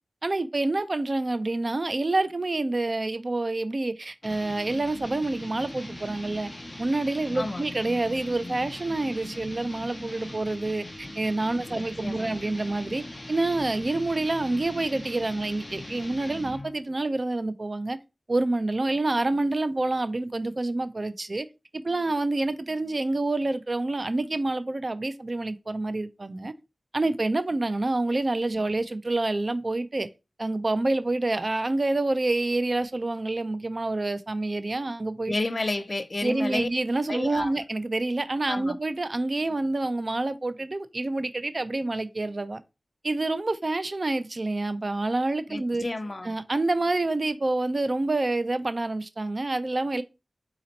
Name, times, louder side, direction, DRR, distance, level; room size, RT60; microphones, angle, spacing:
voice 1, 0.2-6.5 6.8-18.0 18.3-21.5 21.7-26.5 26.9-30.1 30.4-35.3 36.2-42.6 43.0-45.8 46.2-50.0, right 2 dB, 45° right, 0.5 m, -27 dB
sound 1, 4.2-16.8, left 1 dB, 20° left, 1.0 m, -40 dB
voice 2, 11.6-12.3 35.3-36.7 37.1-37.5 38.5-38.8 45.5-46.3, left 2 dB, 40° left, 0.5 m, -31 dB
4.2 x 2.9 x 4.0 m
wide cardioid pair, 65°, 0 cm